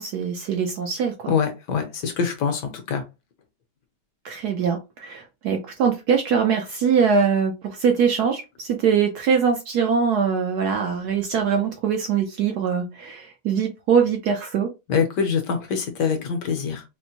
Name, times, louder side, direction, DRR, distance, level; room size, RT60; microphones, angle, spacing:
voice 1, 0.0-1.3 4.2-14.7, right 6 dB, 70° right, 3 dB, 1.0 m, -22 dB
voice 2, 1.3-2.6 2.9-3.0 14.9-16.8, left 6 dB, 70° left, 5 dB, 1.3 m, -24 dB
4.3 x 2.1 x 2.8 m, 0.25 s
omnidirectional pair, 2.1 m